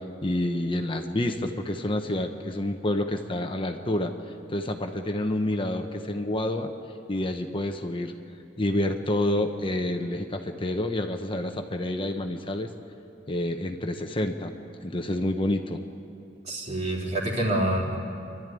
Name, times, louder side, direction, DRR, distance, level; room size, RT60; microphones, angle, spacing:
voice 1, 0.2-4.1 4.5-6.7 7.1-8.1 8.6-12.7 13.3-14.5 14.8-15.8, left 1 dB, 30° left, 5 dB, 0.9 m, -28 dB
voice 2, 16.4-18.0, right 1 dB, 40° right, -2 dB, 3.5 m, -27 dB
28.0 x 12.5 x 9.3 m, 2.6 s
head